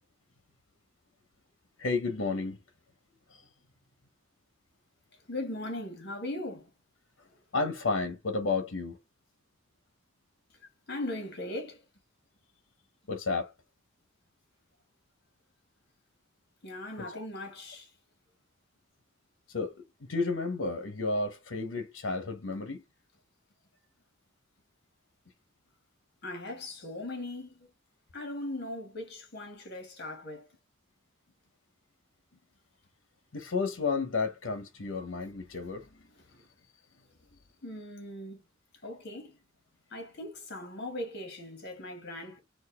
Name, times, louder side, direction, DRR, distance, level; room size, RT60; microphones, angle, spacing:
voice 1, 1.8-2.6 3.3-3.5 7.5-9.0 13.1-13.5 17.0-17.3 19.5-22.8 33.3-35.9, left 3 dB, 90° left, 0.9 m, -32 dB
voice 2, 5.3-6.7 10.9-11.8 16.6-17.9 26.2-27.5 28.1-30.5 37.6-38.4 38.8-39.4 39.9-42.4, left 1 dB, 55° left, 1.8 m, -39 dB
4.4 x 2.5 x 4.1 m
head